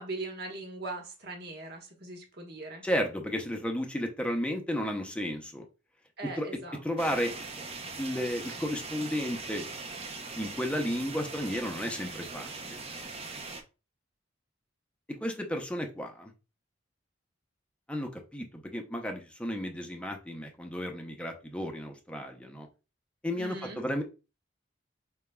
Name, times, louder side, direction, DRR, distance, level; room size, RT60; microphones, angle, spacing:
voice 1, 0.0-2.8 6.2-6.8 7.1-7.2 23.4-23.8, right 2 dB, 55° right, 1.2 m, -40 dB
voice 2, 2.8-5.6 6.2-7.3 8.0-9.6 10.4-12.8 15.2-16.3 17.9-22.7 23.2-24.0, equal, 5° left, 0.6 m, -33 dB
sound 1, 7.0-13.6, right 3 dB, 30° right, 0.6 m, -41 dB
5.0 x 3.5 x 2.2 m
head